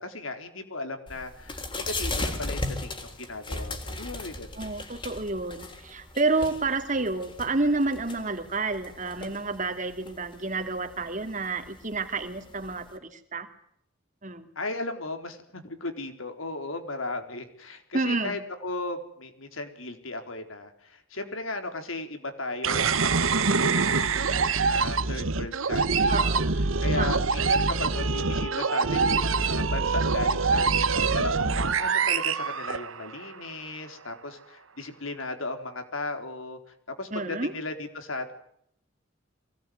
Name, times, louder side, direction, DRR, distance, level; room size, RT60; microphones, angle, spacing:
voice 1, 0.0-4.6 14.6-26.4 26.8-36.6 37.0-38.3, left 2 dB, 85° left, 7 dB, 4.1 m, -36 dB
sound 1, 1.1-13.0, left 2 dB, 25° left, 3.4 m, -37 dB
voice 2, 4.6-13.5 14.2-14.5 17.9-18.4 26.1-26.6 27.0-27.2 37.1-37.5, right 3 dB, 40° right, 6 dB, 2.8 m, -29 dB
sound 2, 22.6-33.3, right 4 dB, 85° right, 1.3 m, -25 dB
24.0 x 18.5 x 9.5 m, 0.71 s
head